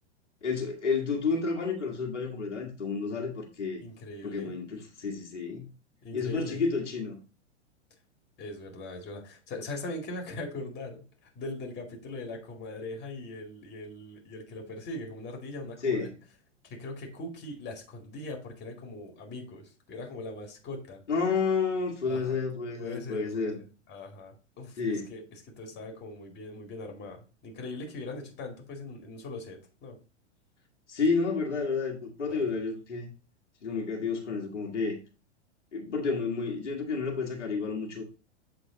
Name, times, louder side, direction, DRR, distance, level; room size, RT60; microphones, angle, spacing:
voice 1, 0.4-3.8 4.2-5.7 6.1-7.2 15.8-16.1 21.1-23.6 24.8-25.1 30.9-33.1 33.6-35.0 35.7-38.1, left 4 dB, 85° left, 0 dB, 1.9 m, -30 dB
voice 2, 3.8-4.6 6.0-6.6 8.4-16.1 16.6-21.0 22.0-22.4 22.8-25.2 25.6-30.0 32.3-32.6, left 2 dB, 30° left, 2 dB, 2.3 m, -41 dB
7.8 x 3.9 x 3.9 m, 0.34 s
hypercardioid pair, 105°, 35 cm